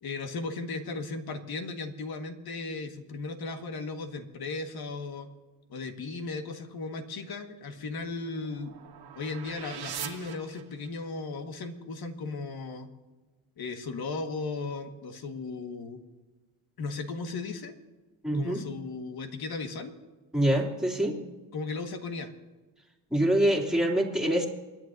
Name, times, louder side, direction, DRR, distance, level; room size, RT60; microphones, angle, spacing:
voice 1, 0.0-5.3 5.7-8.7 9.1-12.9 13.6-16.0 16.8-17.8 18.3-19.9 21.5-22.3, left 3 dB, 55° left, 6 dB, 1.7 m, -36 dB
sound 1, 7.7-11.1, right 8 dB, 60° right, 1.7 m, -43 dB
voice 2, 18.2-18.7 20.3-21.2 23.1-24.5, right 1 dB, ahead, -1 dB, 2.7 m, -25 dB
28.0 x 10.5 x 2.7 m, 1.2 s
cardioid pair, 105°, 44 cm